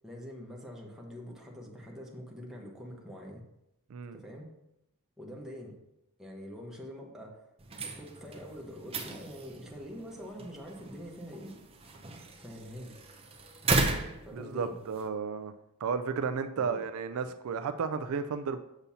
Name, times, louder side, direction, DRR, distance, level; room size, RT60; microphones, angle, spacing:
voice 1, 0.0-3.4 4.1-4.5 5.2-5.8 6.2-7.5 7.8-11.5 12.4-13.0 14.2-14.8 16.6-16.8, equal, ahead, -2 dB, 1.1 m, -45 dB
voice 2, 3.9-4.2 14.3-15.5 15.8-18.6, right 5 dB, 65° right, 10 dB, 0.4 m, -33 dB
sound 1, 7.6-15.1, right 3 dB, 25° right, 0.6 m, -36 dB
7.0 x 6.8 x 2.8 m, 0.87 s
head